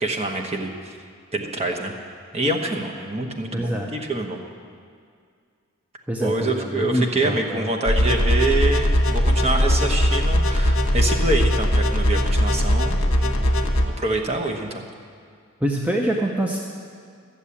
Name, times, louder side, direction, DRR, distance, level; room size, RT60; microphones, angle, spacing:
voice 1, 0.0-1.0 1.3-1.9 2.3-4.4 6.2-13.6 14.0-14.9, right 2 dB, 30° right, 2 dB, 1.1 m, -26 dB
voice 2, 3.5-3.9 6.1-7.6 15.6-16.6, right 1 dB, 5° right, 0 dB, 0.7 m, -25 dB
sound 1, 7.9-13.8, equal, 65° left, 1.2 m, -20 dB
13.0 x 7.3 x 8.5 m, 2.2 s
head